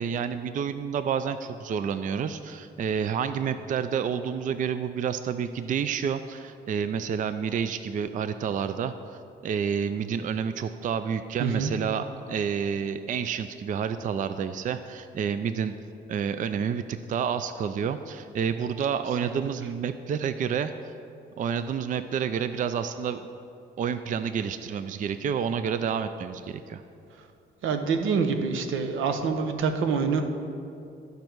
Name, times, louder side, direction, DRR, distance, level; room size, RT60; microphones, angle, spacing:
voice 1, 0.0-15.7 16.1-20.9 21.4-23.2 23.8-26.8, right 7 dB, 40° right, 11 dB, 0.4 m, -29 dB
voice 2, 11.4-11.7 27.6-30.2, right 5 dB, 85° right, 7 dB, 0.8 m, -26 dB
14.0 x 5.3 x 4.6 m, 2.6 s
cardioid pair, 90°, 20 cm